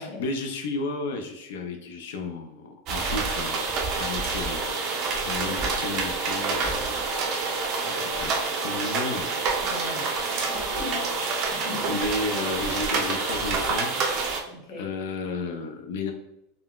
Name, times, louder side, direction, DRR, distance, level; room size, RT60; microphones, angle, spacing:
voice 1, 0.0-3.7 4.0-4.8 5.2-7.1 7.8-8.3 8.6-9.3 9.8-10.6 11.9-13.9 14.8-16.1, left 3 dB, 80° left, 3 dB, 0.4 m, -33 dB
sound 1, 2.9-14.4, right 4 dB, 35° right, 0.5 m, -27 dB
voice 2, 9.6-11.2 11.5-12.0 14.5-15.0, left 4 dB, 20° left, -3 dB, 0.8 m, -38 dB
3.7 x 2.1 x 2.3 m, 0.84 s
supercardioid pair, 160°, 0 cm